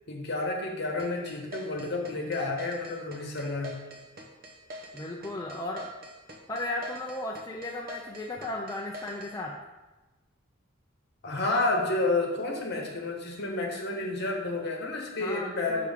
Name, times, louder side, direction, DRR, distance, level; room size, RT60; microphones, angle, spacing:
voice 1, 0.1-3.8 11.2-15.9, left 2 dB, 55° left, 0 dB, 1.3 m, -30 dB
sound 1, 1.0-9.3, equal, 45° right, 0.8 m, -44 dB
voice 2, 4.9-5.9 6.5-9.5 15.2-15.9, left 1 dB, 15° left, -1 dB, 0.4 m, -35 dB
6.2 x 5.8 x 3.6 m, 1.1 s
head